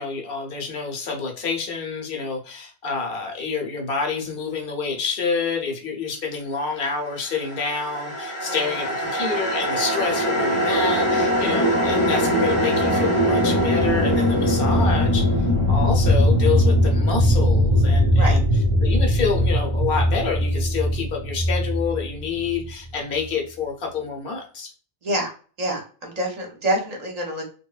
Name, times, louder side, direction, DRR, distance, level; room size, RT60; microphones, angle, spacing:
voice 1, 0.0-18.4 18.8-24.7, left 5 dB, 65° left, 1 dB, 0.9 m, -28 dB
sound 1, 7.4-22.7, equal, 35° left, 0.7 m, -20 dB
voice 2, 8.4-8.8 9.1-9.2 18.2-18.4 25.0-25.3 25.6-27.5, right 1 dB, 45° right, 1 dB, 0.7 m, -27 dB
3.0 x 2.1 x 2.3 m, 0.39 s
omnidirectional pair, 1.1 m